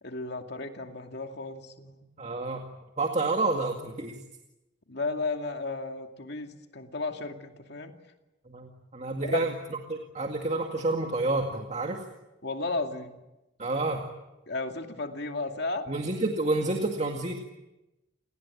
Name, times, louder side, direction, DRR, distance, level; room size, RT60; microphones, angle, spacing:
voice 1, 0.0-2.1 4.9-7.9 9.2-9.4 12.4-13.2 14.5-15.9, left 3 dB, 55° left, 5 dB, 2.5 m, -34 dB
voice 2, 2.2-2.6 3.0-4.2 8.5-12.0 13.6-14.1 15.9-17.4, right 2 dB, 35° right, 3 dB, 2.1 m, -29 dB
29.5 x 19.0 x 8.6 m, 1.0 s
head